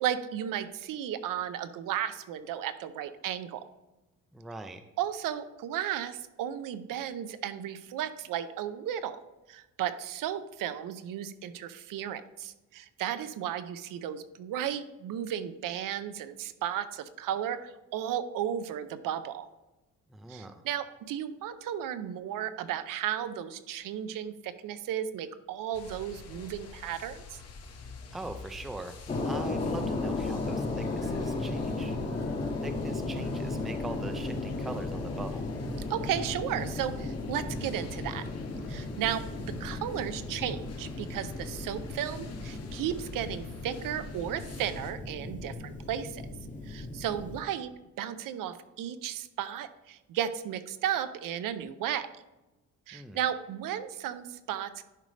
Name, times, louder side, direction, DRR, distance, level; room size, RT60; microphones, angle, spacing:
voice 1, 0.0-3.6 5.0-9.2 9.5-19.5 20.3-27.4 35.9-38.3 38.7-46.2 46.6-47.7 48.0-52.1 52.9-54.8, right 10 dB, 85° right, 12 dB, 0.7 m, -34 dB
voice 2, 4.3-4.9 20.1-20.6 28.1-32.0 32.6-35.5 52.9-53.2, right 2 dB, ahead, 8 dB, 0.3 m, -42 dB
sound 1, 25.7-44.9, left 4 dB, 50° left, 1.0 m, -48 dB
sound 2, 29.1-47.4, left 2 dB, 25° left, 0.8 m, -35 dB
11.0 x 5.1 x 3.3 m, 1.0 s
cardioid pair, 170°, 32 cm